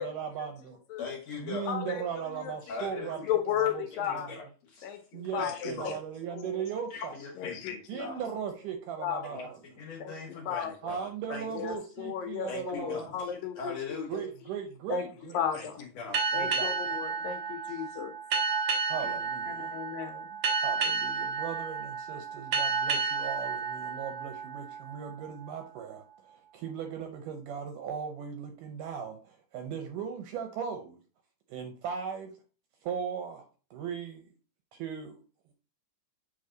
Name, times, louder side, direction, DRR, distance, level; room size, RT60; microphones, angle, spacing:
voice 1, 0.0-0.8 1.4-3.2 3.5-4.3 5.1-7.1 7.9-9.6 10.8-13.1 14.1-15.4 16.3-17.0 17.7-17.8 18.9-19.7 20.6-26.0 26.5-31.0 31.5-32.3 32.8-34.3 34.7-35.2, right 7 dB, 75° right, 6 dB, 2.0 m, -38 dB
voice 2, 1.0-1.8 2.7-3.3 4.1-5.0 5.4-6.0 6.9-8.2 9.2-11.4 12.5-14.2 15.5-16.2, left 4 dB, 60° left, -1 dB, 2.1 m, -40 dB
voice 3, 1.7-2.0 2.4-4.3 4.8-6.0 6.3-6.5 7.4-8.0 9.0-9.2 10.0-10.1 10.5-10.7 11.6-14.0 14.9-15.0 15.3-15.8 16.3-18.1 19.1-19.2 19.5-20.3, left 9 dB, 75° left, 6 dB, 2.2 m, -34 dB
sound 1, 16.1-25.3, right 5 dB, 60° right, 1.5 m, -31 dB
7.8 x 3.5 x 3.9 m, 0.36 s
omnidirectional pair, 4.3 m